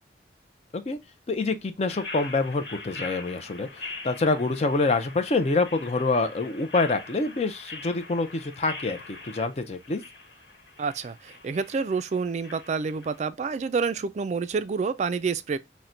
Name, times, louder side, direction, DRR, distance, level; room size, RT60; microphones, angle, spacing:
voice 1, 1.3-10.0, left 3 dB, 35° left, 0.5 m, -26 dB
sound 1, 1.9-13.2, left 3 dB, 70° left, 1.2 m, -43 dB
voice 2, 10.8-15.6, right 5 dB, 40° right, 0.3 m, -28 dB
5.7 x 2.1 x 2.4 m
head